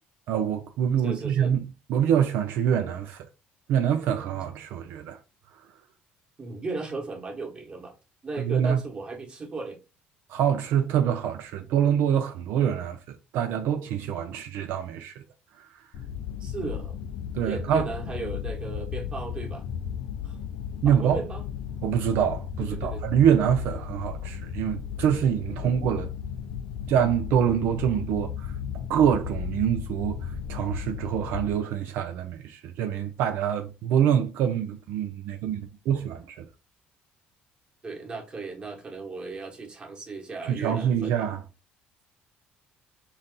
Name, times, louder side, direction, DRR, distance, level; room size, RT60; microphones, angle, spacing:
voice 1, 0.3-3.3 3.7-5.2 8.4-8.8 10.3-15.2 15.5-15.9 17.3-17.9 20.8-21.2 21.8-26.1 26.9-28.6 28.9-36.5 40.5-41.4, right 9 dB, 75° right, 0.5 m, -25 dB
voice 2, 1.0-1.5 6.4-7.9 8.2-9.8 16.4-17.0 17.4-19.7 20.2-20.4 20.9-21.4 22.7-23.0 25.5-25.7 37.8-41.3, right 3 dB, 25° right, 1.3 m, -36 dB
sound 1, 15.9-31.6, left 8 dB, 75° left, 0.4 m, -35 dB
4.1 x 2.5 x 3.7 m
cardioid pair, 130°, 4 cm